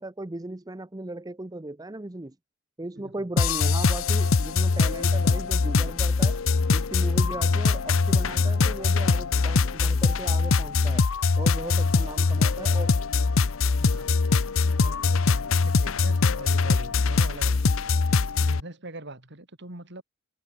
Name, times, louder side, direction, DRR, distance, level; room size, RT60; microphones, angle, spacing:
voice 1, 0.0-2.4 2.8-6.4 6.7-11.1 11.3-13.0, right 2 dB, 20° right, 0.7 m, -37 dB
voice 2, 3.0-3.3 11.6-12.5 13.7-14.3 14.8-20.0, right 2 dB, 60° right, 4.0 m, -43 dB
sound 1, 3.4-18.6, left 4 dB, 75° left, 0.7 m, -23 dB
head